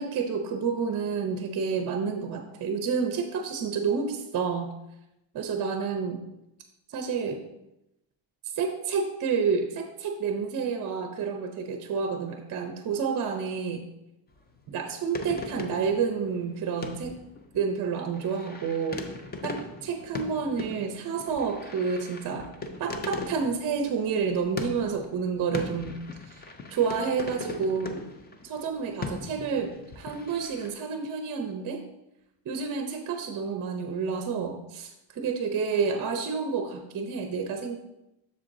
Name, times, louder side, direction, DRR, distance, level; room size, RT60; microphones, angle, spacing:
voice 1, 0.0-4.7 5.3-6.2 6.9-7.4 8.5-13.9 14.7-17.1 17.5-19.0 19.4-22.5 22.8-26.0 26.3-26.4 26.7-28.0 28.4-31.8 32.5-37.8, right 5 dB, 40° right, 4 dB, 0.6 m, -29 dB
sound 1, 14.3-14.9 15.1-30.7, left 3 dB, 25° left, 0.4 m, -40 dB
7.6 x 6.7 x 2.6 m, 0.89 s
cardioid pair, 165°, 47 cm